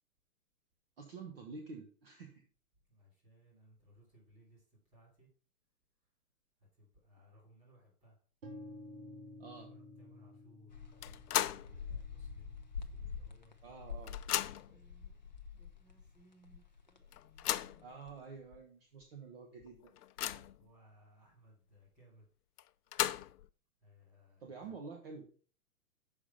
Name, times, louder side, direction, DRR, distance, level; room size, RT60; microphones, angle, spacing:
voice 1, 1.0-2.5 9.4-9.7 13.6-14.1 17.8-19.9 24.4-25.3, right 4 dB, 40° right, 2 dB, 1.1 m, -49 dB
voice 2, 2.9-5.3 6.8-8.2 9.6-10.8 11.3-13.5 14.6-18.5 20.2-22.3 23.8-24.7, equal, 15° right, -3 dB, 3.0 m, -64 dB
sound 1, 8.4-16.3, left 1 dB, 60° right, 2.8 m, -55 dB
sound 2, 10.7-16.1 16.4-18.1, left 6 dB, 35° left, 0.4 m, -46 dB
sound 3, 11.0-11.7 12.1-12.2 13.3-13.4 13.7-14.8 15.6-15.7 16.1-16.2 17.1-17.8 18.5-18.6 19.0-19.1 19.6-20.6 22.6-23.5, left 12 dB, 85° left, 0.6 m, -36 dB
6.9 x 5.2 x 5.6 m, 0.43 s
hypercardioid pair, 175°, 45 cm